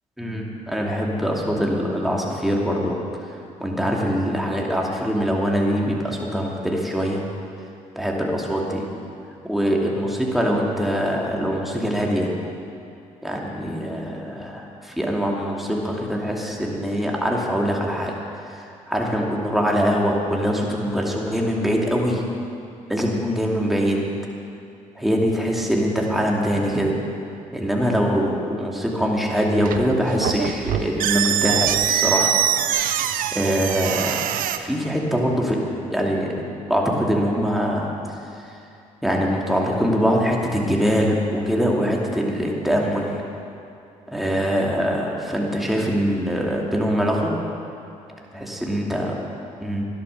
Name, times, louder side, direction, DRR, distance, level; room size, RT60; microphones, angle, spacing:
voice 1, 0.2-3.0 3.6-7.3 8.0-8.9 9.4-12.3 13.2-18.2 18.5-22.3 22.9-24.0 25.0-26.9 27.5-32.3 33.3-34.2 34.6-36.4 36.7-37.9 39.0-43.2 44.1-47.3 48.3-49.1 49.6-49.8, equal, ahead, -2 dB, 2.6 m, -23 dB
sound 1, 29.5-34.6, right 10 dB, 80° right, 0.7 m, -23 dB
12.0 x 11.0 x 6.7 m, 2.6 s
supercardioid pair, 65°, 14 cm